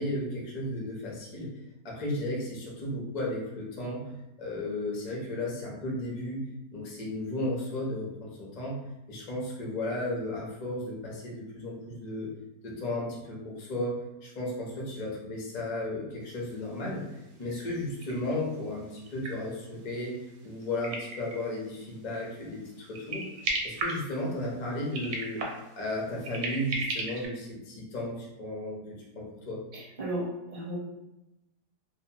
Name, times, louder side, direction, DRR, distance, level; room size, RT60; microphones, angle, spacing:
voice 1, 0.0-1.5 1.8-6.4 6.7-8.8 9.1-12.3 12.6-23.2 23.6-25.4 25.8-28.8 29.1-29.6, left 1 dB, 55° left, -3 dB, 0.4 m, -34 dB
sound 1, 16.5-16.6 16.8-16.9 17.3-21.8 22.3-22.6 22.9-24.5 24.8-27.3, right 3 dB, 70° right, 1.0 m, -35 dB
voice 2, 29.7-30.8, right 1 dB, 40° right, -6 dB, 0.8 m, -35 dB
2.7 x 2.1 x 2.8 m, 0.95 s
omnidirectional pair, 1.8 m